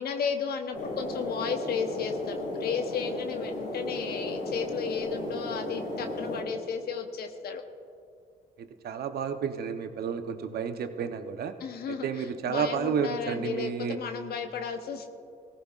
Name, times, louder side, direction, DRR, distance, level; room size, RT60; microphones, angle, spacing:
voice 1, 0.0-7.6 11.6-15.1, left 6 dB, 70° left, 5 dB, 0.9 m, -34 dB
sound 1, 0.7-6.4, left 1 dB, 85° left, 3.3 m, -35 dB
voice 2, 8.6-11.5 11.9-14.0, right 6 dB, 70° right, 8 dB, 0.8 m, -31 dB
17.5 x 15.0 x 2.4 m, 2.5 s
supercardioid pair, 65°, 17 cm